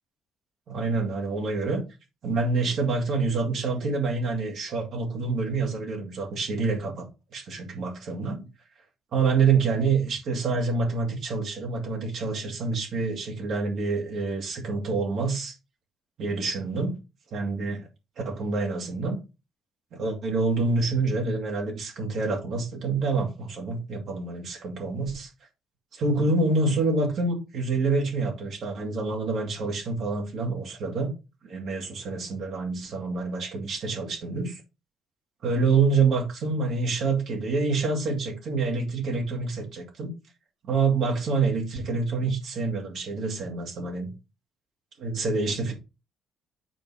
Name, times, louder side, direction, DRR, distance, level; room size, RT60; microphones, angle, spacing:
voice 1, 0.7-1.8 2.2-8.5 9.1-15.5 16.2-17.0 17.3-17.9 18.2-19.2 19.9-25.3 25.9-31.1 31.4-34.6 35.4-40.1 40.7-44.1 45.0-45.7, right 4 dB, 60° right, 2.4 m, -27 dB
8.8 x 3.9 x 4.9 m
cardioid pair, 135°, 0 cm